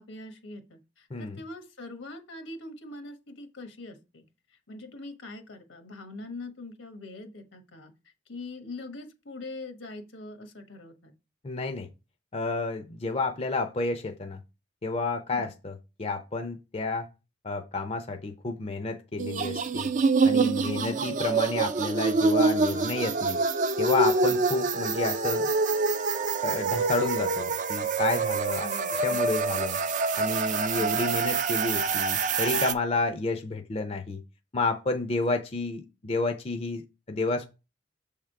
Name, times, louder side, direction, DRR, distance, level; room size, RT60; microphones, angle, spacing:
voice 1, 0.0-4.2 4.7-7.9 8.3-11.1 15.3-15.5 20.7-21.1 24.3-24.4 28.6-29.3 30.7-31.0, left 2 dB, 80° left, 1.2 m, -42 dB
voice 2, 1.1-1.4 11.4-11.9 12.3-14.4 14.8-17.1 17.4-19.9 20.2-23.4 23.8-25.5 26.4-29.8 30.2-34.2 34.5-37.5, left 3 dB, 30° left, 0.5 m, -30 dB
sound 1, 19.2-32.7, right 4 dB, 40° right, 0.5 m, -26 dB
7.1 x 3.6 x 4.5 m
head